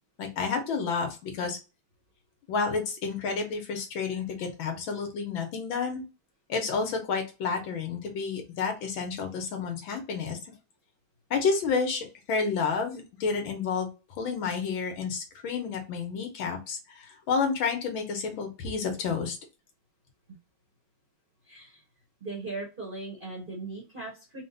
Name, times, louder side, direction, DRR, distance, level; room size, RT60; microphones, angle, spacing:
voice 1, 0.2-1.6 2.5-6.0 6.5-10.4 11.3-13.9 14.2-19.4, left 5 dB, 75° left, 4 dB, 1.8 m, -30 dB
voice 2, 21.4-21.8 22.2-24.4, right 3 dB, 35° right, -2 dB, 0.8 m, -38 dB
4.5 x 2.1 x 3.9 m, 0.30 s
omnidirectional pair, 2.2 m